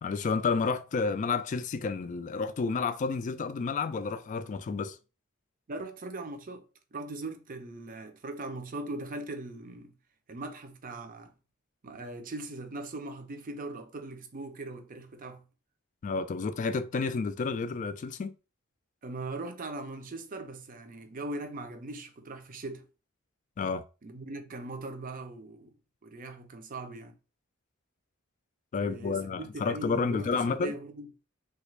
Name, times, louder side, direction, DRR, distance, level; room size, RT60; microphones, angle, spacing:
voice 1, 0.0-5.0 16.0-18.4 23.6-23.8 28.7-30.7, left 4 dB, 35° left, 0.3 m, -30 dB
voice 2, 5.7-6.7 6.9-9.9 10.3-11.3 11.8-15.5 19.0-22.9 24.0-25.7 26.0-27.2 28.8-31.1, right 2 dB, 40° right, 0.5 m, -40 dB
3.3 x 2.4 x 3.1 m
head